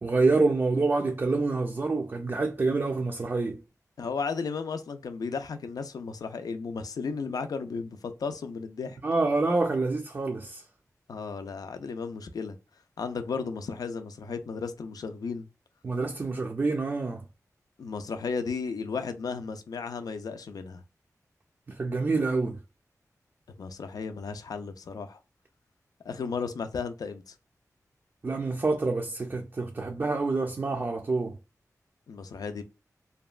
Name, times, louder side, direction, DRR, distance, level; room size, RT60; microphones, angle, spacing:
voice 1, 0.0-3.6 9.0-10.6 15.8-17.2 21.7-22.6 28.2-31.4, right 3 dB, 35° right, 0.4 m, -27 dB
voice 2, 4.0-9.0 11.1-12.6 13.0-15.5 17.8-20.8 23.6-25.2 26.0-27.3 32.1-32.6, left 5 dB, 90° left, 0.4 m, -34 dB
2.8 x 2.2 x 2.3 m
wide cardioid pair, 120°, 6 cm